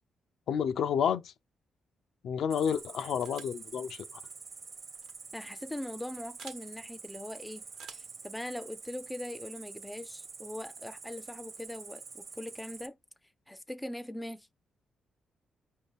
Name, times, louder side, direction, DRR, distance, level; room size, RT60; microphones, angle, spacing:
voice 1, 0.5-1.3 2.2-4.0, left 8 dB, 75° left, 0.4 m, -30 dB
Cricket, 2.5-12.9, right 5 dB, 45° right, 0.6 m, -47 dB
sound 1, 3.2-3.6 4.9-5.1 6.4-6.6 7.7-8.2, right 6 dB, 80° right, 0.9 m, -50 dB
voice 2, 5.3-7.6 7.9-13.0 13.5-14.5, left 1 dB, 5° left, 0.4 m, -41 dB
5.1 x 2.6 x 3.4 m
cardioid pair, 95°, 0 cm